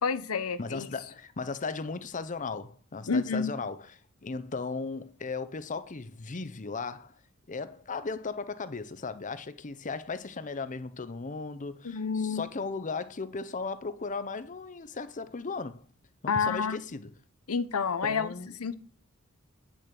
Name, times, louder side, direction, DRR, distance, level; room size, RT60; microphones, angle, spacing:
voice 1, 0.0-0.9 3.1-3.5 11.8-12.4 16.3-16.8 17.5-18.3 18.6-18.7, left 5 dB, 90° left, 0.8 m, -29 dB
voice 2, 0.6-7.2 7.5-15.8 16.2-17.1 18.0-18.7, left 4 dB, 35° left, 0.7 m, -36 dB
8.6 x 6.4 x 6.0 m
head